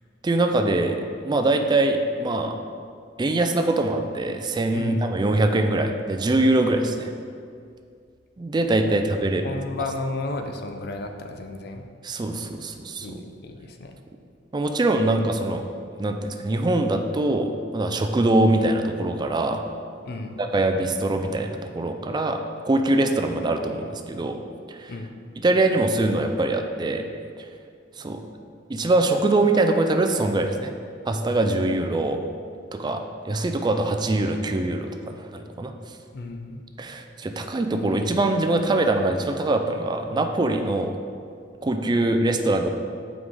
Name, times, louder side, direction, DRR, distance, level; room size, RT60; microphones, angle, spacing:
voice 1, 0.2-1.0 1.3-2.6 3.2-7.1 8.4-9.4 12.0-13.2 14.5-15.6 16.0-19.6 20.4-24.4 24.7-24.9 25.4-27.1 27.4-27.5 28.0-28.2 28.7-30.7 31.1-32.2 32.7-35.7 36.8-41.0 41.6-42.7, right 2 dB, 25° right, 5 dB, 0.4 m, -23 dB
voice 2, 4.7-5.1 8.9-9.0 9.4-11.8 13.0-14.0 20.0-20.4 24.9-25.2 36.1-36.6, left 2 dB, 60° left, 5 dB, 0.6 m, -33 dB
8.0 x 4.8 x 3.7 m, 2.3 s
head